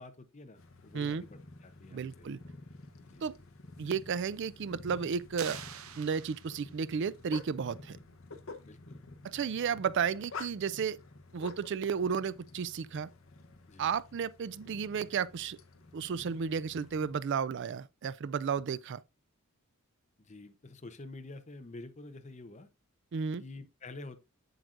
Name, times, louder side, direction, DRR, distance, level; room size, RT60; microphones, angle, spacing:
voice 1, 0.0-2.3 3.0-3.4 8.7-9.0 13.7-13.9 20.2-22.7 23.4-24.2, left 2 dB, 30° left, 0.7 m, -48 dB
sound 1, 0.6-17.1, left 3 dB, 65° left, 0.9 m, -50 dB
voice 2, 1.9-2.4 3.2-3.4 3.8-5.6 6.0-8.0 9.2-11.0 11.3-13.1 13.8-15.6 15.9-19.0 23.1-23.4, right 6 dB, 55° right, 0.4 m, -33 dB
sound 2, 5.4-6.9, right 9 dB, 75° right, 0.8 m, -45 dB
7.8 x 7.7 x 2.5 m
head